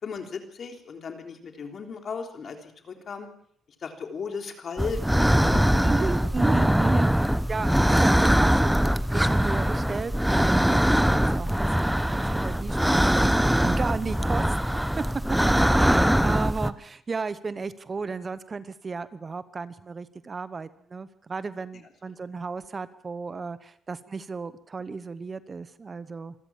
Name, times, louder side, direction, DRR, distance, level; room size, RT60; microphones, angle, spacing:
voice 1, 0.0-3.3 3.8-5.9 7.6-7.9 15.5-15.8, left 5 dB, 50° left, 5 dB, 3.6 m, -36 dB
sound 1, 4.8-16.7, equal, 5° right, 1.0 m, -22 dB
voice 2, 5.8-15.0 15.7-26.3, right 4 dB, 35° right, 15 dB, 1.1 m, -34 dB
26.5 x 13.5 x 7.4 m, 0.65 s
cardioid pair, 90°, 0 cm